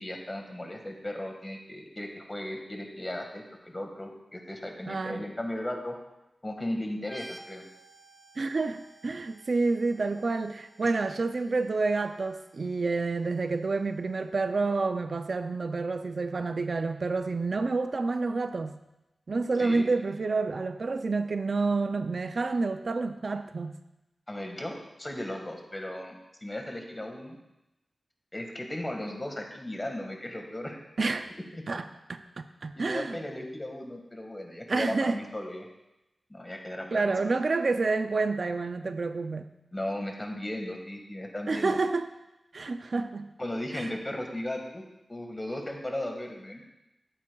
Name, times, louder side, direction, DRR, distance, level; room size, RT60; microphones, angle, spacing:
voice 1, 0.0-6.0 6.4-7.6 10.8-10.9 19.6-19.9 24.3-26.2 26.4-27.4 28.3-30.8 31.5-31.6 32.7-35.7 36.3-37.3 39.7-41.8 43.4-44.8 45.1-46.6, left 1 dB, 25° left, 2 dB, 1.7 m, -36 dB
voice 2, 4.9-5.2 8.4-18.8 19.3-23.8 31.0-31.3 31.7-33.2 34.7-35.2 36.9-39.5 41.5-42.1 42.5-43.3 43.7-43.9, right 3 dB, 60° right, 9 dB, 0.4 m, -29 dB
sound 1, 7.0-14.5, right 1 dB, 15° right, 0.7 m, -54 dB
13.0 x 8.6 x 2.3 m, 0.93 s
wide cardioid pair, 75°, 0 cm